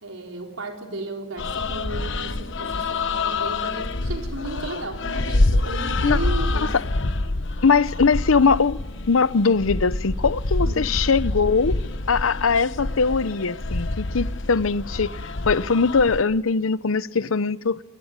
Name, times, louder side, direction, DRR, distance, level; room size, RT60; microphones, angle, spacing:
voice 1, 0.0-6.8 10.6-10.9, right 2 dB, 90° right, 4.2 m, -34 dB
sound 1, 1.4-16.2, left 2 dB, 65° left, 1.1 m, -27 dB
voice 2, 7.6-8.8 9.1-11.8 12.1-17.8, left 4 dB, 85° left, 0.8 m, -21 dB
22.5 x 20.5 x 9.6 m
head